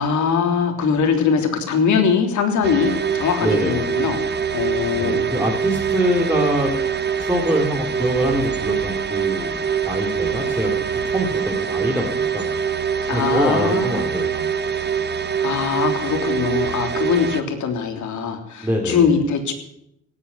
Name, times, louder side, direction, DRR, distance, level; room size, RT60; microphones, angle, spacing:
voice 1, 0.0-4.2 4.5-5.2 13.1-14.0 15.4-19.5, left 6 dB, 75° left, 4 dB, 3.4 m, -21 dB
sound 1, 2.6-17.4, right 7 dB, 35° right, 1.3 m, -24 dB
voice 2, 3.4-3.8 5.0-6.7 7.2-10.7 11.1-12.5 13.1-14.4 18.6-19.1, equal, 5° right, -1 dB, 2.8 m, -24 dB
17.5 x 8.7 x 9.6 m, 0.77 s
cardioid pair, 90°, 30 cm